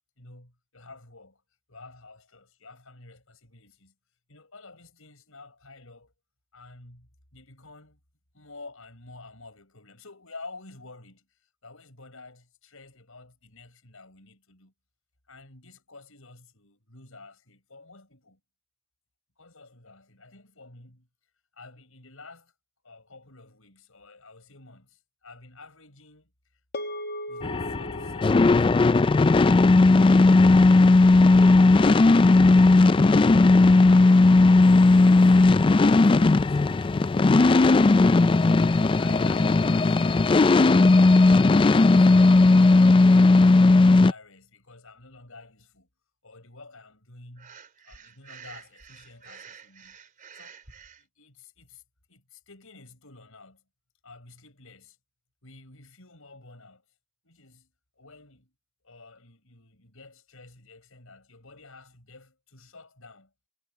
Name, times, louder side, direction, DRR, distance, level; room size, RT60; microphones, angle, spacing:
voice 1, 0.2-1.4 1.7-3.9 4.3-6.1 6.5-8.0 8.3-11.3 11.6-14.7 15.3-18.4 19.4-21.1 21.5-22.5 22.8-26.3 27.3-29.2 29.9-30.8 31.6-34.2 34.8-38.0 39.0-40.1 40.5-45.9 46.2-47.6 47.8-50.0 50.3-50.6 51.0-51.8 52.1-53.6 54.0-55.0 55.4-56.8 57.2-58.5 58.8-63.3, left 3 dB, 75° left, 7.1 m, -50 dB
sound 1, 26.7-31.2, equal, 50° left, 1.3 m, -40 dB
sound 2, 27.4-44.1, left 3 dB, 25° left, 0.3 m, -17 dB
Breathing, 47.4-51.0, right 7 dB, 40° right, 4.1 m, -48 dB
head